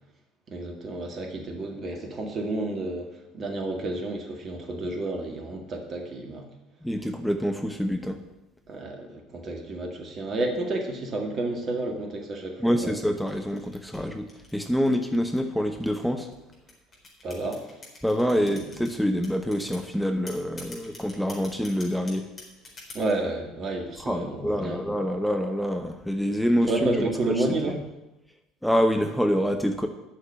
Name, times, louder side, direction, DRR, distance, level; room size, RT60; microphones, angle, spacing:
voice 1, 0.5-6.5 8.7-13.0 17.2-17.8 18.3-18.6 22.9-24.9 26.7-27.8, right 2 dB, 40° right, 2 dB, 2.0 m, -31 dB
voice 2, 6.8-8.2 12.6-14.3 14.5-16.3 18.0-22.2 24.0-26.7 28.6-29.9, equal, ahead, 5 dB, 1.0 m, -26 dB
sound 1, 12.6-15.1 15.8-18.9 19.2-19.9 20.3-23.2, left 3 dB, 35° left, 4.4 m, -45 dB
9.2 x 6.6 x 8.7 m, 0.96 s
figure-of-eight pair, 60°, 0 cm